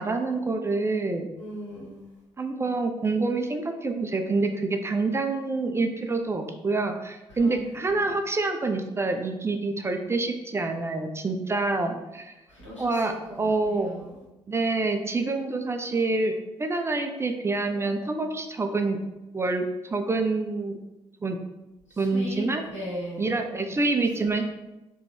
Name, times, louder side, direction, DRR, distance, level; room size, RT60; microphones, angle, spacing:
voice 1, 0.0-1.3 2.4-12.3 12.8-13.9 14.5-16.3 16.6-19.0 19.3-20.8 21.2-21.4 22.0-22.6 23.2-24.4, right 3 dB, 15° right, 5 dB, 0.3 m, -27 dB
voice 2, 1.3-2.0 7.4-7.6 7.9-8.0 12.5-12.9 13.7-14.1 21.9-23.4, equal, 90° left, -8 dB, 0.9 m, -37 dB
3.5 x 2.2 x 3.2 m, 1.0 s
figure-of-eight pair, 45°, 15 cm